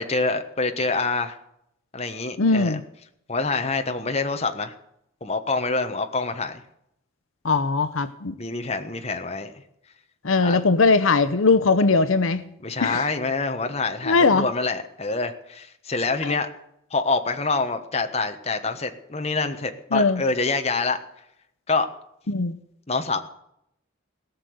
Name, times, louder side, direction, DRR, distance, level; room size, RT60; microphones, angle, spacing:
voice 1, 0.0-1.4 1.9-2.8 3.3-4.7 5.2-6.6 8.4-9.5 10.4-10.6 12.6-16.5 16.9-21.0 21.7-21.9 22.9-23.2, left 3 dB, 30° left, 6 dB, 1.3 m, -26 dB
voice 2, 2.4-2.8 7.4-8.4 10.2-12.4 12.8-13.1 14.0-14.5 16.2-16.3 19.9-20.2 22.3-22.6, left 3 dB, 80° left, 12 dB, 0.8 m, -20 dB
17.5 x 6.8 x 9.5 m, 0.75 s
head